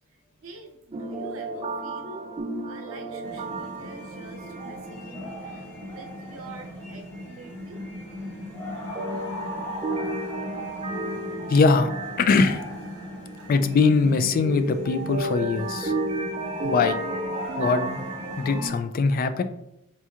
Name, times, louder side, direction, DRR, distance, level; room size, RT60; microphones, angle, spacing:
voice 1, 0.4-2.3 2.7-5.7 5.9-7.8 10.8-11.4 13.0-13.5 16.2-16.7, right 2 dB, 85° right, 3 dB, 0.6 m, -47 dB
sound 1, 0.9-6.2 6.5-6.6 9.0-13.1 14.3-18.8, right 2 dB, 30° right, 0.4 m, -33 dB
sound 2, 3.2-18.7, left 1 dB, 10° left, 0.9 m, -38 dB
voice 2, 11.5-11.9 12.2-12.6 13.5-15.9 16.6-17.0 17.6-18.0 18.4-19.4, left 4 dB, 45° left, 10 dB, 0.3 m, -21 dB
4.2 x 3.0 x 2.4 m, 0.81 s
head